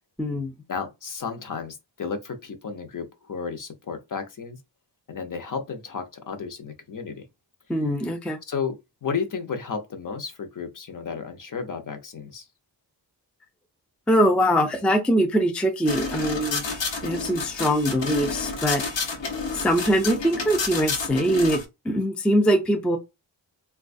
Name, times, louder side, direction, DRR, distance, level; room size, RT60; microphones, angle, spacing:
voice 1, 0.2-0.5 7.7-8.4 14.1-16.6 17.0-18.8 19.5-23.0, equal, 5° left, 0.3 m, -22 dB
voice 2, 0.7-4.6 5.1-7.2 8.5-8.8 9.0-12.5, left 5 dB, 50° left, 0.6 m, -33 dB
sound 1, 15.9-21.6, left 4 dB, 85° left, 0.9 m, -30 dB
3.9 x 2.2 x 2.5 m
wide cardioid pair, 180°, 43 cm